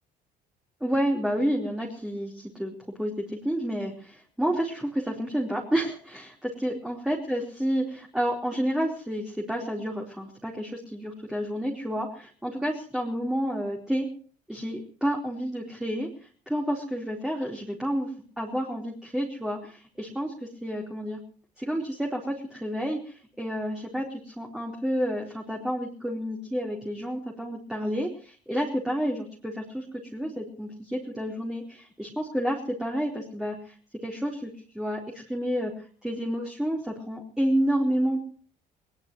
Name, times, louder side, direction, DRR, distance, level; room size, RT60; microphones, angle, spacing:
voice 1, 0.8-2.7 3.0-14.1 14.5-18.1 18.4-21.2 21.6-29.8 30.1-33.7 34.0-35.7 36.0-38.2, equal, 5° right, -1 dB, 4.1 m, -30 dB
21.5 x 20.5 x 3.1 m, 0.44 s
cardioid pair, 110°, 17 cm